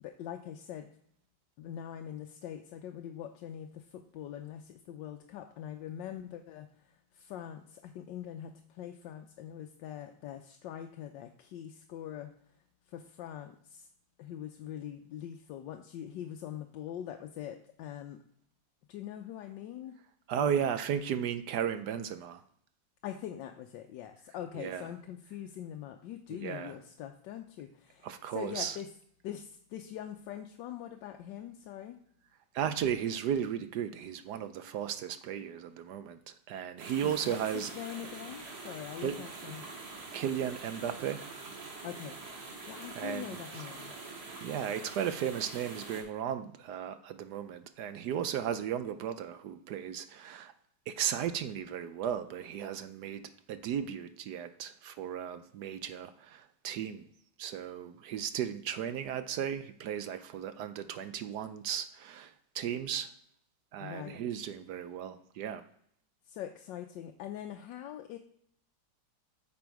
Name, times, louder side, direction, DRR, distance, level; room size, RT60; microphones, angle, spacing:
voice 1, 0.0-0.9 1.6-6.7 7.1-12.3 12.9-13.9 14.2-18.2 18.9-20.0 20.4-20.7 23.0-28.9 29.2-32.0 37.0-39.6 41.8-42.2 42.7-43.9 63.8-64.2 66.3-68.2, left 10 dB, 75° left, 5 dB, 1.3 m, -43 dB
voice 2, 20.3-22.4 24.5-24.9 26.4-26.7 28.0-28.8 32.5-37.7 39.0-39.2 40.1-41.2 42.9-43.4 44.4-50.5 50.9-57.1 57.4-63.1 63.7-65.6, right 9 dB, 70° right, 11 dB, 1.1 m, -35 dB
sound 1, 36.8-46.0, right 3 dB, 55° right, 2.3 m, -45 dB
8.4 x 6.1 x 4.7 m, 0.67 s
omnidirectional pair, 2.1 m